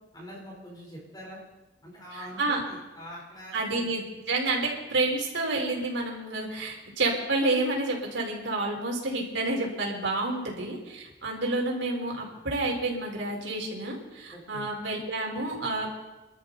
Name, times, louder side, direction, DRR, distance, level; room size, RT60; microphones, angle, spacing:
voice 1, 0.1-1.4 1.8-3.9 14.3-14.7, equal, 20° left, -3 dB, 4.1 m, -44 dB
voice 2, 2.1-2.6 3.5-15.9, right 2 dB, 85° right, -1 dB, 4.5 m, -29 dB
27.0 x 13.0 x 4.1 m, 1.0 s
head